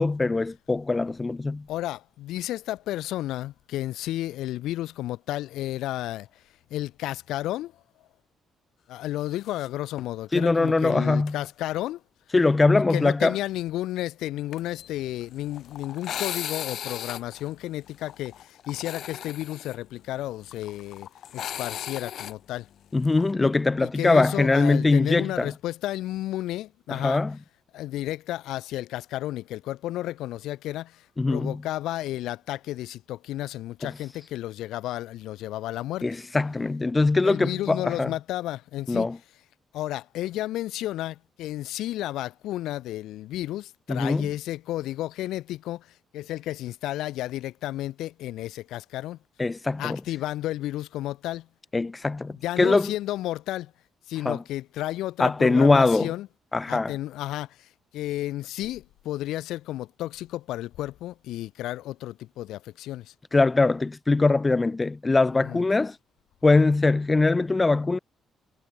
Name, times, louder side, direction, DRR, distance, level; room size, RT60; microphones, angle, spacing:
voice 1, 0.0-1.6 10.3-11.3 12.3-13.4 22.9-25.5 26.9-27.4 31.2-31.6 33.8-33.9 36.0-38.1 38.9-39.2 43.9-44.3 49.4-50.0 51.7-52.9 54.2-54.4 55.2-56.1 56.5-56.9 63.3-66.0 66.4-68.0, left 3 dB, 20° left, 0.5 m, -22 dB
voice 2, 1.7-6.3 6.7-7.7 8.9-12.0 12.9-21.1 21.3-22.7 23.8-27.2 27.7-36.1 37.2-39.1 39.7-45.9 46.1-49.2 49.8-51.5 52.4-53.7 54.1-56.3 56.7-63.1 65.4-65.6, left 14 dB, 90° left, 1.2 m, -32 dB
sound 1, 9.4-9.7 10.0-10.1 11.3-11.5 14.5-23.3, left 10 dB, 70° left, 0.8 m, -37 dB
cardioid pair, 90°, 0 cm